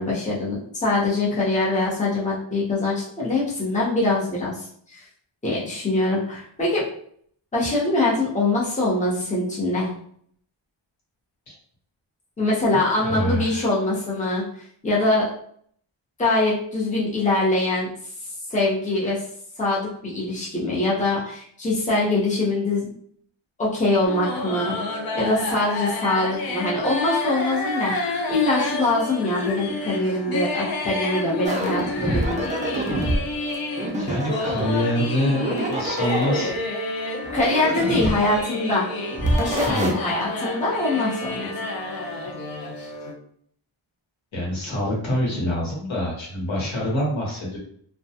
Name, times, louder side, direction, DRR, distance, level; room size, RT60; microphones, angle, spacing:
voice 1, 0.0-5.0 5.4-6.9 7.5-9.9 12.4-15.3 16.2-17.9 18.5-19.2 19.6-22.9 23.6-24.8 25.1-28.0 28.3-32.4 37.3-38.9 39.4-41.5, left 2 dB, 15° left, -6 dB, 0.7 m, -23 dB
voice 2, 12.7-13.7 34.0-36.5 39.5-39.9 44.3-47.6, equal, 70° left, -4 dB, 1.1 m, -26 dB
sound 1, 24.0-43.1, left 2 dB, 50° left, 0.5 m, -29 dB
sound 2, 31.4-33.2 33.8-34.8 35.3-36.6 37.2-38.5 39.1-39.9, right 1 dB, 15° right, 0.4 m, -26 dB
2.2 x 2.2 x 2.7 m, 0.62 s
wide cardioid pair, 115°, 48 cm